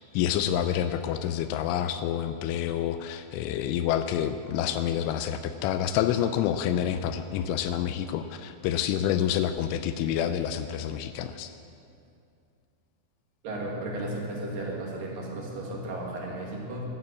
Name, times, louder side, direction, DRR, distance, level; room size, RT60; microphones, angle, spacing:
voice 1, 0.1-11.5, left 10 dB, 85° left, 9 dB, 3.0 m, -28 dB
voice 2, 13.4-16.8, right 1 dB, 55° right, -2 dB, 3.2 m, -34 dB
12.5 x 9.7 x 8.2 m, 2.5 s
omnidirectional pair, 5.5 m